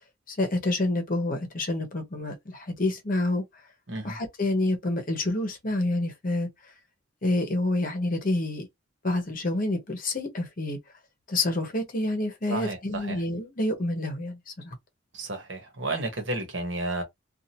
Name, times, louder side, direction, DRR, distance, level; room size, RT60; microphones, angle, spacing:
voice 1, 0.3-3.4 4.0-6.5 7.2-8.7 9.0-10.8 11.3-14.8, left 2 dB, 45° left, 0.9 m, -28 dB
voice 2, 12.5-13.2 15.1-17.0, right 2 dB, 70° right, 1.1 m, -32 dB
2.7 x 2.4 x 2.8 m
head